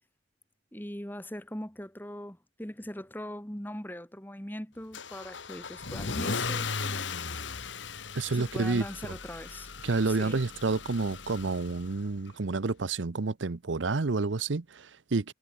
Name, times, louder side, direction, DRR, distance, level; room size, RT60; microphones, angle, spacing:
voice 1, 0.7-7.1 8.3-9.7 10.1-10.4, left 1 dB, 10° left, 1.9 m, -40 dB
Car / Engine starting / Accelerating revving vroom, 4.9-12.0, left 4 dB, 85° left, 1.8 m, -37 dB
voice 2, 8.2-9.1 9.8-15.3, right 3 dB, 85° right, 0.8 m, -29 dB
head